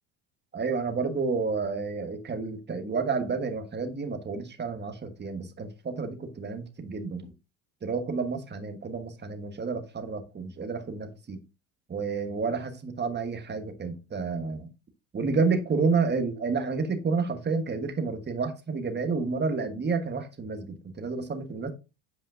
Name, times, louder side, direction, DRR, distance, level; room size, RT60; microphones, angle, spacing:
voice 1, 0.5-7.3 7.8-11.4 11.9-14.7 15.1-21.7, right 4 dB, 25° right, 1.3 m, -30 dB
8.0 x 4.9 x 2.6 m
supercardioid pair, 95°, 45 cm